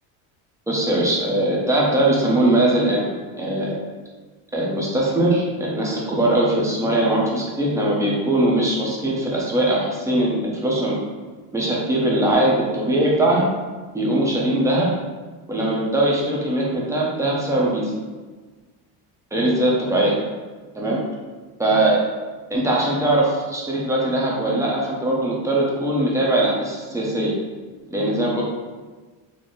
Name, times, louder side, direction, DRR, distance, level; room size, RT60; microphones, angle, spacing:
voice 1, 0.7-3.1 3.4-3.8 4.5-11.0 11.5-13.4 13.9-14.9 15.5-18.0 19.3-20.1 20.7-21.0 21.6-22.0 22.5-27.3 27.9-28.4, right 1 dB, 5° right, -4 dB, 0.7 m, -21 dB
4.0 x 2.1 x 3.7 m, 1.4 s
cardioid pair, 130°, 46 cm